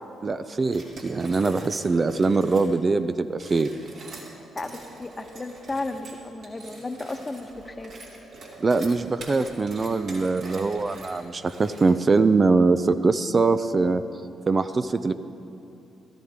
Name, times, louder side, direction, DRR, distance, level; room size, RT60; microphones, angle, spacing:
voice 1, 0.2-3.7 8.6-14.0 14.5-15.1, right 3 dB, 35° right, 10 dB, 0.5 m, -22 dB
sound 1, 0.7-2.7 3.3-12.2, right 2 dB, 65° right, 2.8 m, -44 dB
voice 2, 4.5-7.9, left 2 dB, 25° left, 7 dB, 1.1 m, -34 dB
16.5 x 14.0 x 3.7 m, 2.7 s
hypercardioid pair, 45°, 0 cm